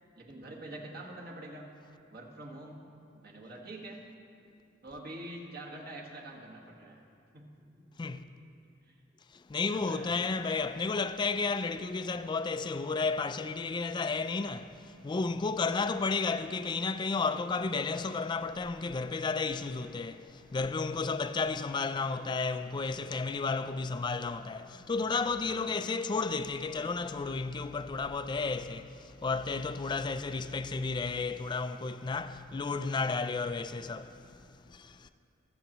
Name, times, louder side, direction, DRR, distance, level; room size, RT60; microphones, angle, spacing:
voice 1, 0.2-1.7 2.1-2.8 3.1-4.0 4.8-7.0 7.3-7.5 8.9-9.0 9.7-10.2 25.4-25.8, right 1 dB, 50° right, 1.5 m, -45 dB
voice 2, 9.5-34.2 34.7-35.1, left 4 dB, 25° left, 0.3 m, -32 dB
23.0 x 7.8 x 3.0 m
head